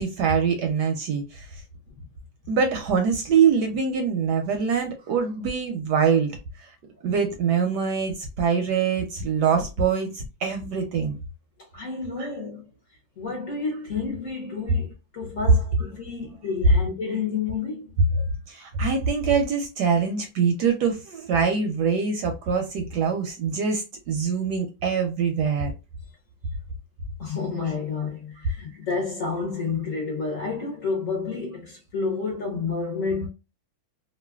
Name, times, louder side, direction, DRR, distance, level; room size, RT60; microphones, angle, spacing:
voice 1, 0.0-1.5 2.5-6.3 7.0-11.2 12.2-12.3 18.5-25.7, right 6 dB, 70° right, 1.0 m, -24 dB
voice 2, 11.7-12.7 13.2-17.9 27.2-33.3, left 4 dB, 55° left, 0.9 m, -30 dB
3.1 x 2.3 x 2.2 m
omnidirectional pair, 2.1 m